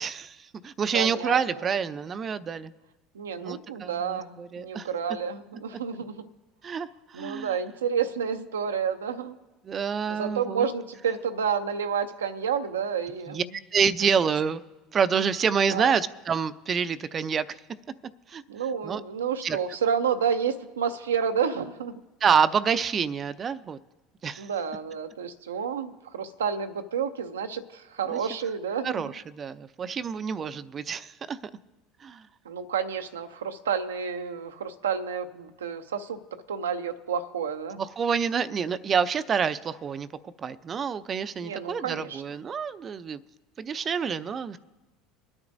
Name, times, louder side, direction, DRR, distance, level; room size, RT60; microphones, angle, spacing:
voice 1, 0.0-2.7 3.4-4.9 6.6-7.6 9.6-10.7 13.3-14.6 14.9-17.6 18.3-18.4 18.8-19.0 19.4-19.6 22.2-23.8 24.2-24.5 28.1-28.2 28.8-31.4 32.0-32.2 37.8-43.2 43.6-44.6, right 6 dB, 35° right, 13 dB, 0.5 m, -27 dB
voice 2, 0.9-1.4 3.1-6.3 7.1-9.4 10.1-13.4 15.7-15.9 18.5-22.0 24.4-29.1 32.5-36.2 36.5-37.8 41.4-42.2, right 7 dB, 85° right, 7 dB, 0.6 m, -30 dB
26.5 x 9.7 x 2.6 m, 1.1 s
hypercardioid pair, 75°, 0 cm